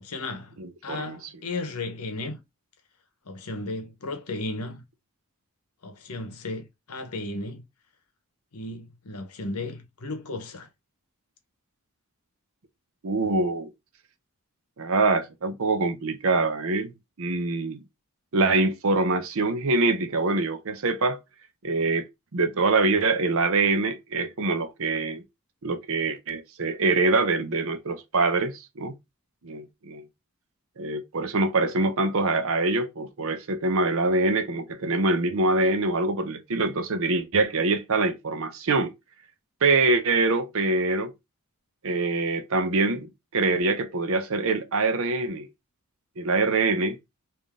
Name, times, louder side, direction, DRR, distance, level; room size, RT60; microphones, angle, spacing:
voice 1, 0.0-0.6 0.8-2.4 3.3-4.8 5.8-7.6 8.5-10.7, left 2 dB, 80° left, 0.9 m, -34 dB
voice 2, 0.6-1.2 13.0-13.7 14.8-16.9 17.2-17.8 18.3-21.2 21.6-22.1 22.3-25.2 25.6-28.9 29.4-30.0 30.8-38.9 39.6-41.1 41.8-45.5 46.2-47.0, right 3 dB, 65° right, 0.7 m, -24 dB
3.5 x 2.6 x 3.5 m
head